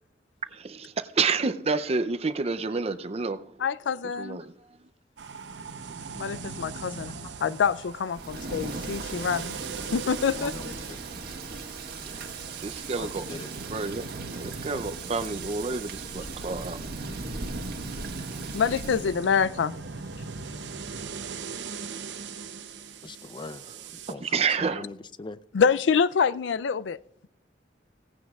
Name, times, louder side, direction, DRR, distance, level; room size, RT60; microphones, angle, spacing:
voice 1, 0.5-3.4 4.1-4.5 12.0-12.3 12.6-13.2 13.7-16.8 24.2-24.9, right 4 dB, 35° right, 0.5 m, -29 dB
voice 2, 3.6-4.4 6.1-9.6 9.9-10.5 18.5-19.8 25.5-27.0, left 6 dB, 85° left, 0.4 m, -26 dB
sound 1, 5.2-24.1, right 5 dB, 85° right, 0.8 m, -40 dB
Thunder / Rain, 8.1-19.2, right 3 dB, 60° right, 1.8 m, -38 dB
voice 3, 10.3-11.0 12.9-13.5 23.0-23.6 24.1-25.4, left 3 dB, 25° left, 0.4 m, -41 dB
17.0 x 15.5 x 2.4 m
head